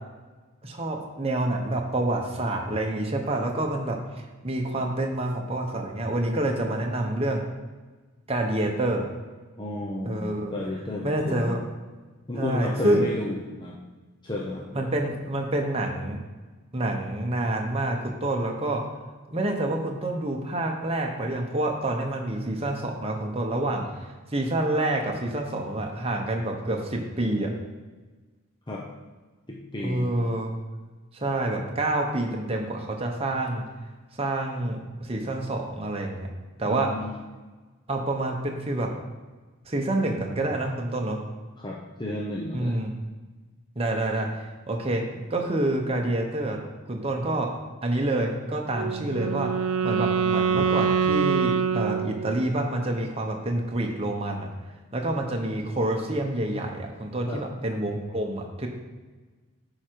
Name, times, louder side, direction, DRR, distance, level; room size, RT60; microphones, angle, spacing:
voice 1, 0.6-7.4 8.3-9.1 10.0-10.5 11.0-11.6 12.4-13.0 14.7-16.2 16.7-18.8 19.3-23.9 24.3-27.5 29.8-30.6 31.1-33.6 34.2-36.3 36.6-36.9 37.9-38.9 39.6-41.2 42.5-42.9 43.8-45.0 45.3-46.6 46.9-47.5 47.8-49.5 49.8-54.5 54.9-58.7, right 1 dB, 25° right, 1 dB, 1.0 m, -27 dB
voice 2, 9.6-11.5 12.3-13.8 14.2-14.9 28.7-28.8 29.5-30.1 36.7-37.1 41.6-42.8 57.3-57.4, left 1 dB, 20° left, -2 dB, 0.7 m, -32 dB
Wind instrument woodwind instrument, 48.7-52.7, right 6 dB, 75° right, 0.5 m, -25 dB
9.6 x 4.9 x 4.6 m, 1.3 s
head